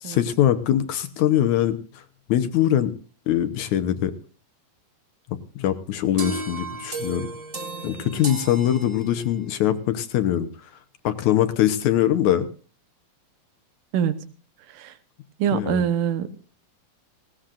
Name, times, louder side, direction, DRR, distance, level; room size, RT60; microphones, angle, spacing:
voice 1, 0.0-2.0 2.3-2.9 3.3-4.2 5.3-7.3 7.8-10.5 11.0-12.5 15.5-15.8, left 11 dB, 70° left, 2.0 m, -22 dB
sound 1, 6.2-9.5, right 2 dB, 30° right, 1.1 m, -34 dB
voice 2, 15.4-16.3, right 8 dB, 75° right, 2.5 m, -24 dB
19.0 x 17.5 x 2.5 m
omnidirectional pair, 4.0 m